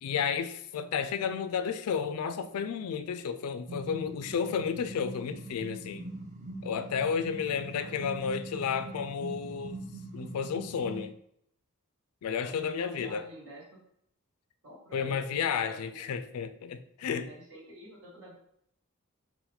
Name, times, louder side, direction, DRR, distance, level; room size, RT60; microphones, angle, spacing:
voice 1, 0.0-6.1 6.6-9.8 10.1-11.2 12.2-13.2 14.9-17.3, left 6 dB, 90° left, 0.3 m, -32 dB
sound 1, 3.7-11.1, right 2 dB, 35° right, 0.5 m, -43 dB
voice 2, 7.6-8.3 12.4-13.8 14.6-16.1 17.2-18.3, right 1 dB, 75° right, 1.4 m, -49 dB
4.3 x 2.1 x 3.9 m
head